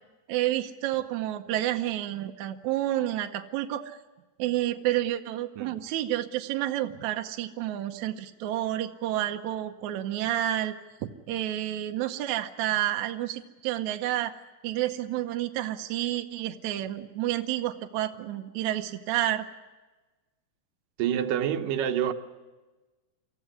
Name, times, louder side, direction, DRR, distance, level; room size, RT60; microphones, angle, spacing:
voice 1, 0.3-4.0 4.4-10.7 11.0-14.3 14.6-19.5, right 13 dB, 70° right, 2.1 m, -30 dB
voice 2, 21.0-22.1, right 9 dB, 90° right, 2.6 m, -27 dB
24.0 x 15.0 x 9.8 m
omnidirectional pair, 3.7 m